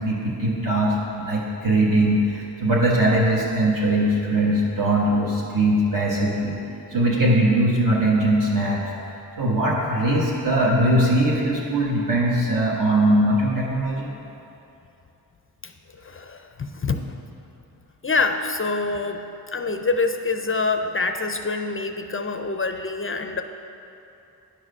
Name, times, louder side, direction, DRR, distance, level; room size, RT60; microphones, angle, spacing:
voice 1, 0.0-6.6 6.9-14.1, right 1 dB, 55° right, -5 dB, 1.3 m, -21 dB
voice 2, 16.0-17.1 18.0-19.2 19.5-23.4, left 3 dB, 35° left, 6 dB, 0.4 m, -26 dB
10.0 x 4.8 x 6.5 m, 2.9 s
wide cardioid pair, 95°, 40 cm